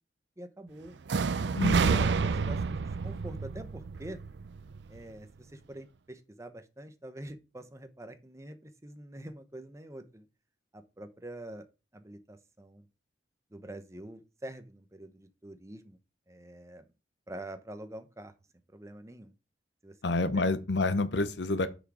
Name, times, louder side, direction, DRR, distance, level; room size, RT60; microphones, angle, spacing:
voice 1, 0.4-1.0 1.9-4.2 4.9-10.3 10.7-11.7 11.9-12.9 13.5-16.0 16.3-16.9 17.3-18.3 18.7-19.3 19.8-19.9 20.3-20.4, right 1 dB, 15° right, 0.9 m, -45 dB
sound 1, 1.1-5.0, right 5 dB, 70° right, 0.5 m, -29 dB
voice 2, 1.6-2.0 20.0-21.7, left 2 dB, 70° left, 0.8 m, -28 dB
6.7 x 6.1 x 4.8 m
head